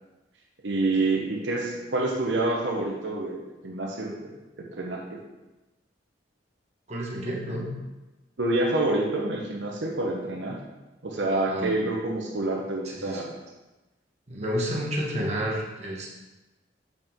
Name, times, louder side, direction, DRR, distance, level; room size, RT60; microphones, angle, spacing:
voice 1, 0.6-5.2 8.4-10.6 11.0-13.3, right 2 dB, 75° right, -1 dB, 1.0 m, -27 dB
voice 2, 6.9-7.7 11.5-11.8 12.8-13.2 14.3-16.1, equal, 35° right, -3 dB, 1.3 m, -30 dB
7.2 x 5.4 x 3.7 m, 1.1 s
head